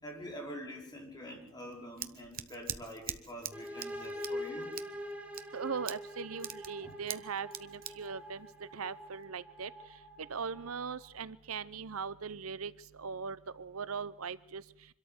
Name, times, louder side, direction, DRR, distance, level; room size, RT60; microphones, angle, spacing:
voice 1, 0.0-4.7 6.8-6.9, equal, 20° left, 0 dB, 5.2 m, -46 dB
Scissors, 1.5-9.2, right 11 dB, 40° right, 1.0 m, -45 dB
sound 1, 3.5-11.2, left 1 dB, 5° right, 2.7 m, -44 dB
voice 2, 5.5-8.5 8.7-9.7 10.3-12.7 13.0-14.6, right 5 dB, 75° right, 17 dB, 0.8 m, -39 dB
25.5 x 13.0 x 8.0 m, 0.73 s
head